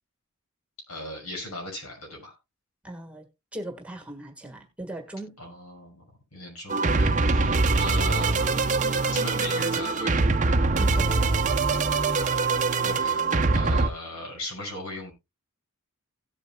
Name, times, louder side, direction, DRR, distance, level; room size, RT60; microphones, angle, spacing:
voice 1, 0.9-2.3 5.4-6.0 6.3-8.4 9.1-10.2 12.8-13.3 13.5-15.1, left 1 dB, 90° left, 6.0 m, -38 dB
voice 2, 2.8-5.4 10.8-11.2, right 1 dB, 5° right, 1.5 m, -39 dB
sound 1, 6.7-13.9, right 3 dB, 35° right, 0.6 m, -23 dB
17.0 x 8.2 x 2.2 m
head